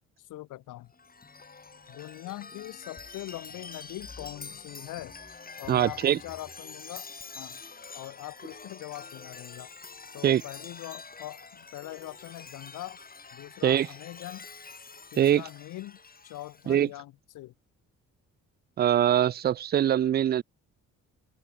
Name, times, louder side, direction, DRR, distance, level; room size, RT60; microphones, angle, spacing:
voice 1, 0.2-0.9 1.9-5.2 5.6-7.1 7.3-7.6 7.9-9.7 10.1-13.0 13.3-14.5 15.1-16.0 16.2-17.5, left 16 dB, 90° left, 3.4 m, -42 dB
Chime, 0.9-16.8, left 4 dB, 30° left, 5.7 m, -46 dB
voice 2, 5.7-6.2 10.2-10.4 13.6-13.9 15.2-15.4 16.7-16.9 18.8-20.4, right 10 dB, 35° right, 0.4 m, -23 dB
cardioid pair, 90°, 30 cm